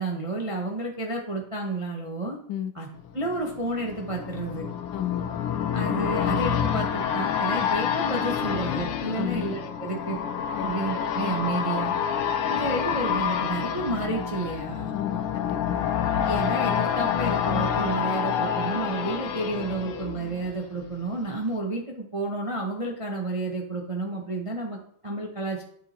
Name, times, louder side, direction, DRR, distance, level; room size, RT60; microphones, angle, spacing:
voice 1, 0.0-2.4 2.7-2.9 3.1-4.7 5.7-10.2 10.6-12.0 12.5-14.9 16.2-25.6, right 2 dB, 30° right, 0 dB, 0.6 m, -31 dB
sound 1, 3.1-20.9 21.2-21.3, left 8 dB, 90° left, 1.8 m, -28 dB
voice 2, 4.9-5.3 7.6-7.7 9.1-9.5 10.5-10.8 14.9-15.9, left 11 dB, 70° left, 10 dB, 1.4 m, -33 dB
10.5 x 6.4 x 4.3 m, 0.66 s
omnidirectional pair, 2.4 m